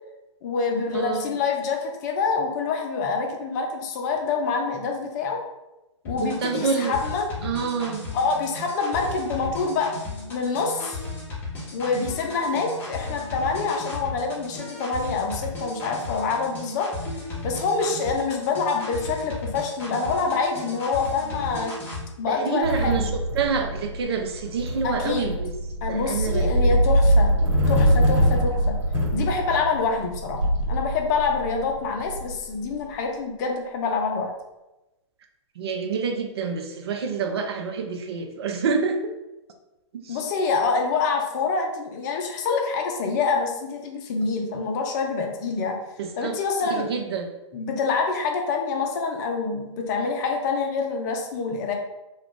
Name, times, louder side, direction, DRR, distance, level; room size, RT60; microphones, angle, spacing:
voice 1, 0.4-5.4 6.0-7.3 8.1-9.9 10.3-11.0 11.7-16.9 17.4-21.7 22.2-23.1 24.8-25.3 25.8-27.3 27.7-28.8 29.1-34.3 40.1-45.8 46.2-46.9 47.5-51.7, left 4 dB, 35° left, 2 dB, 0.6 m, -26 dB
voice 2, 0.9-1.4 6.2-7.0 7.4-8.1 22.3-23.1 23.3-25.5 25.9-26.7 35.6-39.2 39.9-40.2 46.0-46.4 46.7-47.3, right 5 dB, 55° right, 4 dB, 0.5 m, -27 dB
sound 1, 6.1-22.0, left 2 dB, 15° left, 0.9 m, -35 dB
sound 2, 22.6-32.8, equal, 75° right, 1.1 m, -23 dB
2.3 x 2.3 x 3.6 m, 1.0 s
hypercardioid pair, 130°, 16 cm